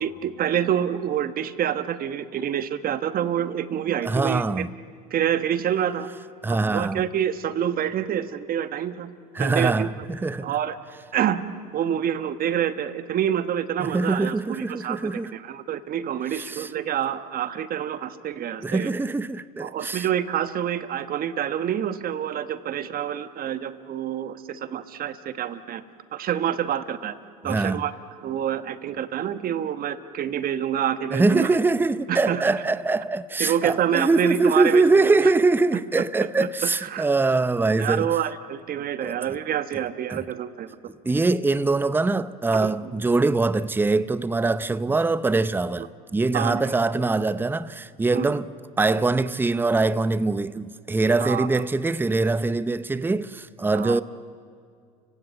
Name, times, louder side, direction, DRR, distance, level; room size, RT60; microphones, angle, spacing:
voice 1, 0.0-4.6 5.1-6.1 6.5-9.1 9.4-9.9 10.4-10.8 11.1-11.4 11.7-18.9 19.6-25.8 26.1-27.1 27.4-27.9 28.2-31.5 32.1-32.4 33.4-35.2 36.8-37.0 37.8-40.7 42.6-42.7 46.3-46.7 48.1-48.3 51.2-51.6 53.7-54.0, right 9 dB, 45° right, 1.3 m, -27 dB
voice 2, 4.0-4.7 6.4-7.0 9.3-10.5 13.8-15.3 16.3-16.7 18.6-20.1 27.4-27.8 31.1-38.1 39.0-39.2 40.1-40.2 40.8-48.5 48.8-54.0, right 3 dB, 10° right, 0.7 m, -23 dB
30.0 x 16.5 x 8.9 m
hypercardioid pair, 85°, 21 cm